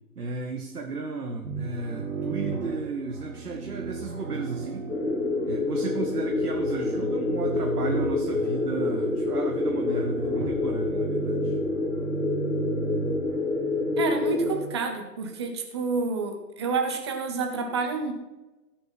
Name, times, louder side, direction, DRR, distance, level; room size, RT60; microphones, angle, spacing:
voice 1, 0.1-4.9 5.4-11.6, right 4 dB, 70° right, 3 dB, 1.4 m, -34 dB
sound 1, 1.4-14.8, right 5 dB, 50° right, 2.3 m, -35 dB
sound 2, 4.9-14.5, left 3 dB, 70° left, 2.6 m, -27 dB
voice 2, 14.0-18.1, right 4 dB, 15° right, 4 dB, 0.8 m, -29 dB
16.0 x 6.7 x 4.2 m, 1.1 s
figure-of-eight pair, 145°, 48 cm